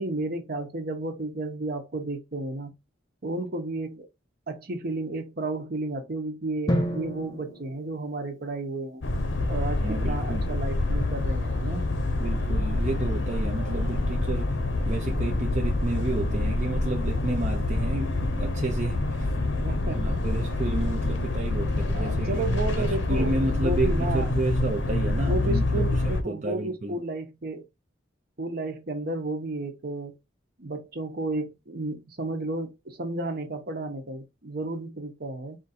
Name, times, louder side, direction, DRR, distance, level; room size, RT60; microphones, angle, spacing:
voice 1, 0.0-2.7 3.2-4.1 4.5-9.0 9.5-11.8 13.8-14.0 15.1-15.2 19.6-20.4 21.9-24.3 25.2-27.7 28.4-30.1 30.6-35.6, right 2 dB, 55° right, 1.0 m, -32 dB
Drum, 6.7-8.6, equal, 20° left, 0.8 m, -30 dB
sound 1, 9.0-26.2, left 2 dB, 75° left, 0.8 m, -26 dB
voice 2, 9.8-10.6 12.2-14.6 14.9-19.3 19.9-22.4 22.8-27.0, right 2 dB, 40° right, 0.6 m, -31 dB
4.5 x 2.6 x 4.2 m
head